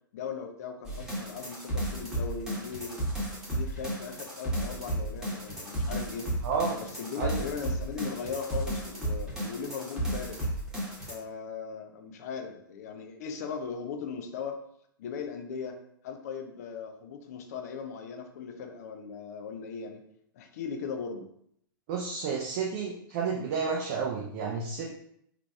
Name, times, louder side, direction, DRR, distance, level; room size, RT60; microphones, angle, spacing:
voice 1, 0.1-3.0 3.4-6.3 6.8-10.4 11.1-14.6 15.0-15.8 16.0-20.0 20.3-21.3, left 6 dB, 45° left, 5 dB, 0.6 m, -38 dB
sound 1, 0.8-11.1, right 1 dB, 5° right, 1.2 m, -33 dB
voice 2, 6.4-6.8 7.2-7.4 21.9-24.9, right 5 dB, 35° right, -1 dB, 0.6 m, -31 dB
4.6 x 3.6 x 2.3 m, 0.70 s
figure-of-eight pair, 105°, 12 cm